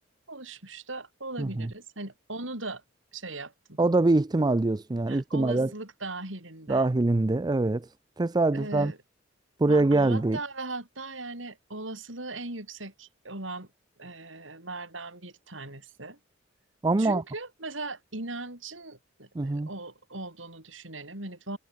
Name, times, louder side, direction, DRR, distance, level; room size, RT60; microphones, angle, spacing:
voice 1, 0.3-2.8 3.1-3.8 5.1-6.9 8.5-9.0 9.7-13.7 14.0-16.2 17.0-21.6, right 2 dB, 75° right, 7.7 m, -39 dB
voice 2, 1.4-1.7 3.8-5.7 6.7-7.9 8.2-8.9 9.6-10.4 16.8-17.2 19.4-19.7, right 2 dB, 20° right, 0.5 m, -24 dB
head